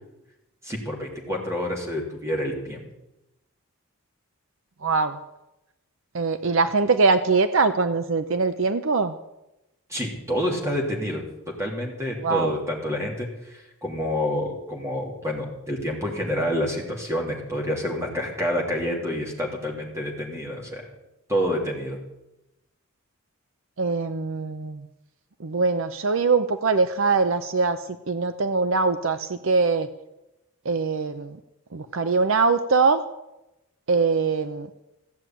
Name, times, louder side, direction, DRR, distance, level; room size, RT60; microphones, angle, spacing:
voice 1, 0.6-2.9 9.9-11.2 11.6-20.8 21.3-22.0, equal, 15° right, -1 dB, 3.0 m, -28 dB
voice 2, 4.8-5.2 6.1-9.1 12.2-12.5 23.8-24.9 25.4-27.8 28.1-29.9 30.7-31.4 31.7-33.0 33.9-34.7, right 4 dB, 60° right, 10 dB, 0.6 m, -22 dB
15.5 x 7.6 x 9.1 m, 0.94 s
head